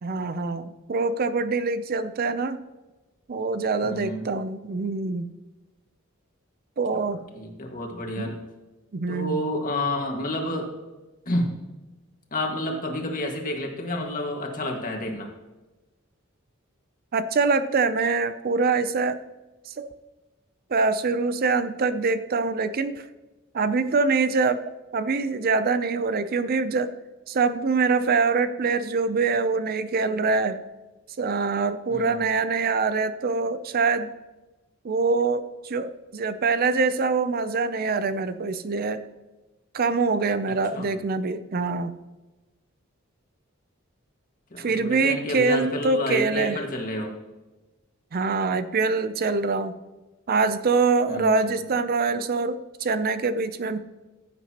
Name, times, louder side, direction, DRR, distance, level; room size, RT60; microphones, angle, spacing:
voice 1, 0.0-2.6 3.3-5.3 6.8-7.2 8.2-8.3 8.9-9.5 17.1-19.2 19.7-19.9 20.7-23.0 23.5-24.6 24.9-26.9 27.3-30.6 31.2-34.1 34.8-39.0 39.7-41.9 44.6-46.6 48.1-49.7 50.3-53.8, right 4 dB, 45° right, 12 dB, 0.5 m, -24 dB
voice 2, 3.8-4.3 7.3-8.4 9.1-10.7 11.3-11.5 12.3-15.3 31.9-32.2 40.7-40.9 44.5-47.1 51.1-51.7, left 1 dB, 40° left, 2 dB, 1.8 m, -30 dB
15.0 x 8.3 x 2.9 m, 1.1 s
head